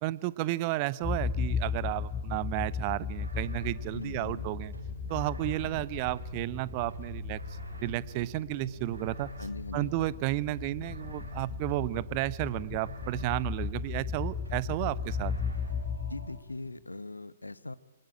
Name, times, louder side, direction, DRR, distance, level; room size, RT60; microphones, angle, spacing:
voice 1, 0.0-4.7 5.1-9.3 9.7-15.3, right 18 dB, 35° right, 19 dB, 0.8 m, -32 dB
sound 1, 1.0-16.7, left 6 dB, 15° left, 1.1 m, -36 dB
sound 2, 3.2-16.3, equal, 75° right, 6.4 m, -44 dB
voice 2, 3.9-4.5 9.4-9.9 16.1-17.8, left 2 dB, 80° left, 18 dB, 0.9 m, -40 dB
27.5 x 20.0 x 8.8 m, 1.1 s
figure-of-eight pair, 115°, 0 cm